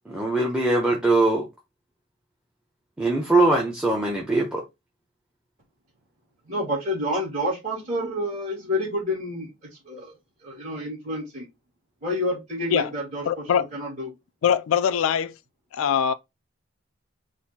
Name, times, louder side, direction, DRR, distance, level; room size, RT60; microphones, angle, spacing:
voice 1, 0.1-1.5 3.0-4.6, right 2 dB, 5° right, 0.7 m, -21 dB
voice 2, 6.5-10.1 10.4-11.5 12.0-13.4 13.7-14.1, left 1 dB, 35° right, 2.2 m, -29 dB
voice 3, 13.2-13.7 14.4-15.3 15.7-16.1, left 8 dB, 70° left, 0.3 m, -22 dB
4.2 x 2.6 x 4.1 m
head